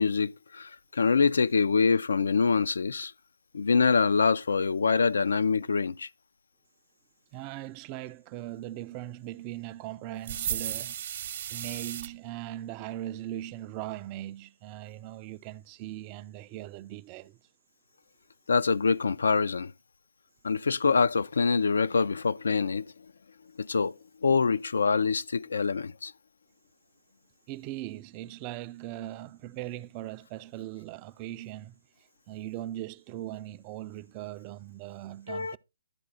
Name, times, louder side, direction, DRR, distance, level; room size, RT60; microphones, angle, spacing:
voice 1, 0.0-3.1 3.5-6.1 18.5-19.7 20.4-22.9 23.6-26.1 35.3-35.6, left 5 dB, 80° left, 0.3 m, -25 dB
voice 2, 7.3-11.0 11.5-17.4 27.5-31.8 32.3-35.6, right 14 dB, 25° right, 0.3 m, -39 dB
sound 1, 10.2-12.1, right 10 dB, 45° right, 0.7 m, -34 dB
11.5 x 4.0 x 3.8 m
hypercardioid pair, 150°, 0 cm